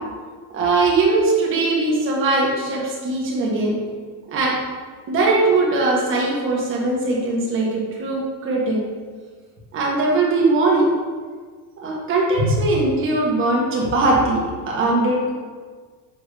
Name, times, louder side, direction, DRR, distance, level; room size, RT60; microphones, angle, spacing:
voice 1, 0.5-3.8 4.3-4.6 5.1-8.8 9.7-10.9 11.8-15.3, right 2 dB, 30° right, -3 dB, 1.4 m, -20 dB
7.2 x 2.9 x 4.9 m, 1.5 s
cardioid pair, 165°, 40 cm